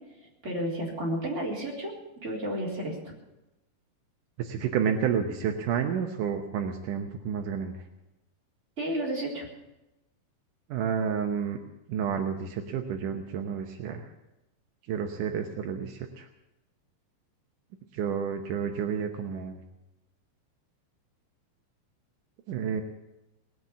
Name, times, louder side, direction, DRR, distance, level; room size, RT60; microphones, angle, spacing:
voice 1, 0.4-1.9 2.2-3.1 8.8-9.5, right 1 dB, 15° right, -3 dB, 3.7 m, -31 dB
voice 2, 4.4-7.8 10.7-11.6 11.9-14.1 14.9-16.3 17.9-19.6 22.5-22.8, right 7 dB, 85° right, 4 dB, 1.8 m, -30 dB
20.0 x 8.0 x 8.5 m, 0.95 s
omnidirectional pair, 5.0 m